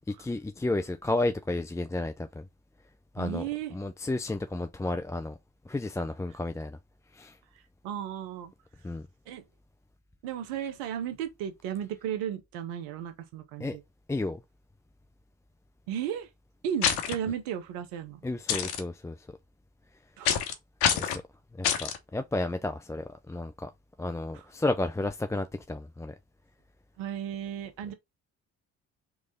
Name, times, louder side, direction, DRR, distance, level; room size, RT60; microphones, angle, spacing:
voice 1, 0.1-2.5 3.1-5.4 5.7-6.8 7.1-7.4 8.8-9.0 13.6-13.8 14.1-14.4 18.2-19.3 20.9-21.2 21.5-23.7 24.0-26.1, left 2 dB, 10° left, 0.4 m, -32 dB
voice 2, 3.2-3.8 7.8-8.5 9.3-9.4 10.2-13.8 15.9-16.3 16.6-18.2 20.2-20.6 24.3-24.4 27.0-27.9, right 9 dB, 80° right, 0.9 m, -35 dB
sound 1, 16.8-17.1 18.5-18.8 20.2-20.5 20.8-21.2 21.6-22.0, left 9 dB, 75° left, 0.9 m, -26 dB
3.6 x 3.2 x 3.7 m
hypercardioid pair, 50°, 40 cm